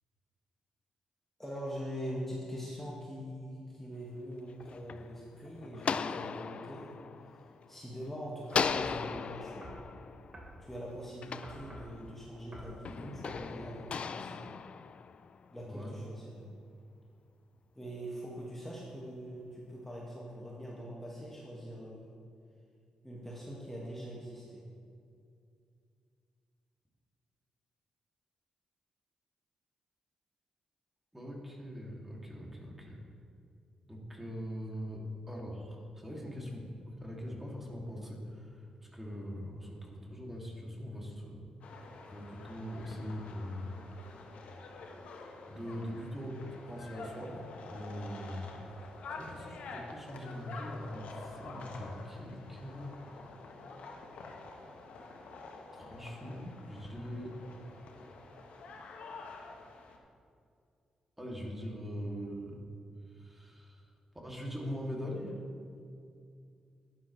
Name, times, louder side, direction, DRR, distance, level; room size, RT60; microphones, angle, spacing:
voice 1, 1.4-7.0 7.7-9.7 10.6-14.4 15.5-16.5 17.8-22.2 23.0-24.6, equal, 10° left, -5 dB, 1.8 m, -43 dB
sound 1, 4.3-8.0 8.5-12.2 12.8-15.5, left 6 dB, 55° left, 0.3 m, -38 dB
sound 2, 8.5-9.0 9.6-9.9 10.3-10.6 11.4-11.9 12.5-12.8 13.2-13.5, right 1 dB, 40° right, 2.8 m, -48 dB
voice 2, 15.6-16.0 31.1-33.0 33.9-41.4 42.1-43.8 45.4-53.2 55.7-57.5 61.2-62.7 63.0-63.9 64.2-65.4, equal, 10° right, -2 dB, 2.6 m, -42 dB
sound 3, 41.6-60.0, left 3 dB, 75° left, 1.2 m, -48 dB
11.5 x 10.0 x 3.2 m, 2.4 s
supercardioid pair, 55°, 2 cm